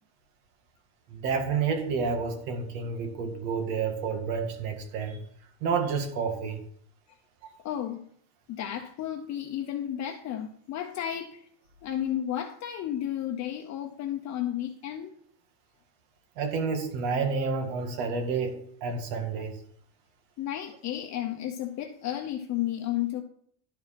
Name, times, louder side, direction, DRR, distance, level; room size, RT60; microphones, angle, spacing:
voice 1, 1.1-5.2 5.6-6.6 16.4-19.6, right 5 dB, 90° right, 5 dB, 2.0 m, -29 dB
voice 2, 7.6-8.0 8.5-11.5 11.8-15.1 20.4-23.2, left 11 dB, 40° left, 3 dB, 0.7 m, -33 dB
11.0 x 4.8 x 5.8 m, 0.65 s
cardioid pair, 150°, 45 cm